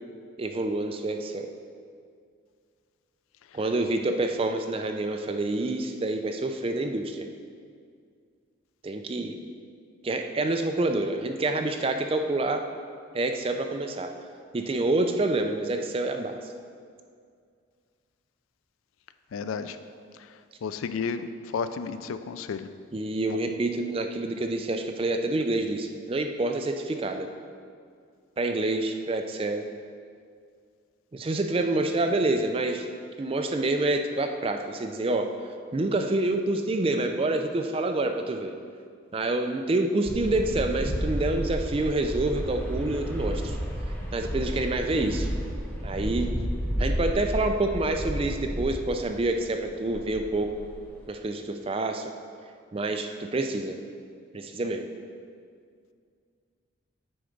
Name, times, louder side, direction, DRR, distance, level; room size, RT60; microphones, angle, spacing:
voice 1, 0.4-1.5 3.5-7.2 8.8-9.4 10.0-12.6 13.1-14.1 14.5-16.4 22.9-27.3 28.4-29.7 31.1-32.9 33.2-35.3 35.7-38.5 39.1-43.6 44.1-45.3 45.8-46.3 46.8-50.5 51.1-52.1 52.7-53.8 54.3-54.9, right 2 dB, 25° right, 5 dB, 0.3 m, -27 dB
voice 2, 19.3-19.8 20.6-22.7 23.3-23.4, left 5 dB, 80° left, 11 dB, 0.3 m, -32 dB
sound 1, 40.1-49.4 49.8-51.0, equal, 10° left, 0.9 m, -32 dB
7.8 x 3.9 x 5.1 m, 2.2 s
head